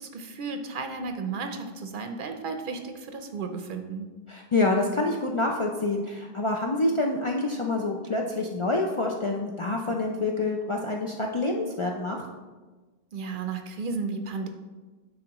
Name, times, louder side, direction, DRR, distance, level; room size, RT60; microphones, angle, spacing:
voice 1, 0.0-4.1 13.1-14.5, right 4 dB, 60° right, 6 dB, 0.7 m, -33 dB
voice 2, 4.3-12.2, left 2 dB, 45° left, 0 dB, 0.4 m, -27 dB
9.6 x 3.8 x 3.0 m, 1.3 s
omnidirectional pair, 1.0 m